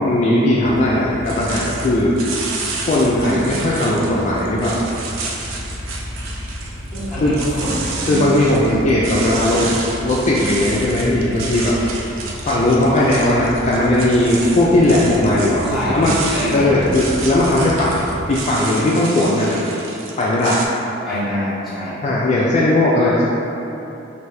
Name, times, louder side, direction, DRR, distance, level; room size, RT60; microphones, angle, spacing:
voice 1, 0.0-2.1 2.8-4.8 7.2-7.4 8.1-9.6 10.0-11.8 12.5-15.6 15.9-16.2 16.5-18.0 18.3-19.6 20.2-20.6 22.0-23.3, left 1 dB, 35° left, -6 dB, 0.3 m, -17 dB
sound 1, 0.6-18.4, equal, 70° right, 0.9 m, -33 dB
sound 2, 1.2-20.6, right 3 dB, 85° right, 0.5 m, -30 dB
voice 2, 6.9-8.6 9.1-9.8 15.6-17.0 21.0-21.9, equal, ahead, -13 dB, 1.2 m, -25 dB
5.0 x 2.6 x 3.2 m, 3.0 s
head